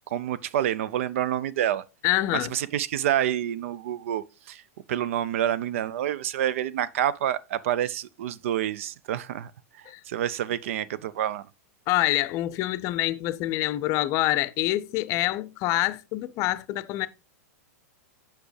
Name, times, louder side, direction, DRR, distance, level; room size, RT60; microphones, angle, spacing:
voice 1, 0.1-1.8 2.3-4.6 4.9-9.5 10.1-11.4, right 11 dB, 60° right, 0.4 m, -28 dB
voice 2, 2.0-2.5 9.9-10.0 11.9-17.1, left 16 dB, 40° left, 0.5 m, -26 dB
7.9 x 5.8 x 3.2 m
figure-of-eight pair, 100°, 8 cm